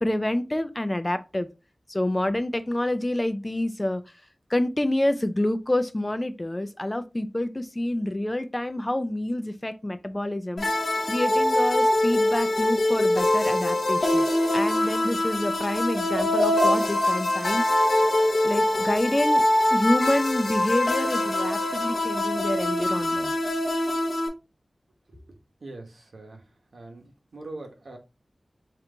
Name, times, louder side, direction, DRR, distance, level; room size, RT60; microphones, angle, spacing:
voice 1, 0.0-1.5 1.9-4.0 4.5-10.7 11.1-14.3 14.5-17.6 18.4-19.4 19.7-23.3, left 1 dB, 20° left, 0.4 m, -27 dB
sound 1, 10.6-24.3, left 1 dB, 90° left, 0.8 m, -23 dB
voice 2, 25.6-26.4 26.7-27.0 27.3-28.0, right 2 dB, 85° right, 1.0 m, -41 dB
3.8 x 3.0 x 3.4 m
wide cardioid pair, 85°, 0 cm